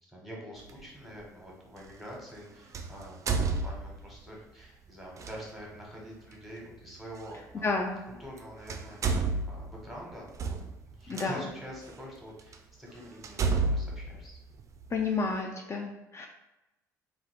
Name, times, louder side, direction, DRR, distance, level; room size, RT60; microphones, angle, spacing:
voice 1, 0.0-7.7 8.2-10.6 10.8-14.4, equal, ahead, -3 dB, 1.3 m, -46 dB
sound 1, 0.7-0.8 2.7-4.2 5.2-5.4 7.2-7.3 8.2-8.4 8.7-11.3 11.9-12.0 12.5-12.6 13.2-15.0, right 4 dB, 35° right, 0.4 m, -31 dB
voice 2, 7.6-8.0 11.1-11.5 14.9-16.3, left 4 dB, 30° left, 2 dB, 0.4 m, -31 dB
3.5 x 2.4 x 3.3 m, 0.96 s
figure-of-eight pair, 55°, 9 cm